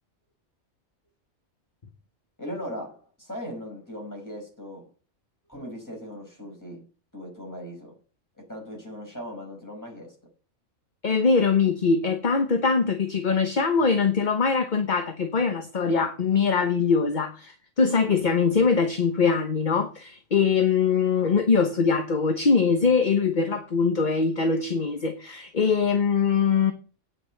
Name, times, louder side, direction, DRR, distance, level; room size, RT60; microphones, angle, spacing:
voice 1, 2.4-4.9 5.5-6.9 7.1-8.0 8.4-10.2, equal, 15° left, 5.4 m, -38 dB
voice 2, 11.0-26.7, left 5 dB, 40° left, 1.1 m, -22 dB
9.3 x 6.1 x 7.7 m
omnidirectional pair, 1.4 m